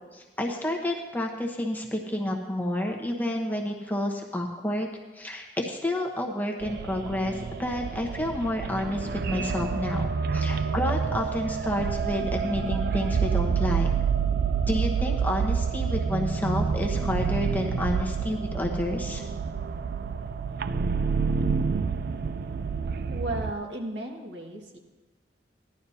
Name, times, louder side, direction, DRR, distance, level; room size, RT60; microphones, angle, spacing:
voice 1, 0.0-4.9 5.1-13.9 14.7-19.2, left 1 dB, 10° left, 0 dB, 1.0 m, -30 dB
sound 1, 6.6-23.5, right 6 dB, 55° right, 0.4 m, -28 dB
voice 2, 23.1-24.8, right 1 dB, 80° right, 0 dB, 1.8 m, -34 dB
16.0 x 11.5 x 2.8 m, 1.2 s
head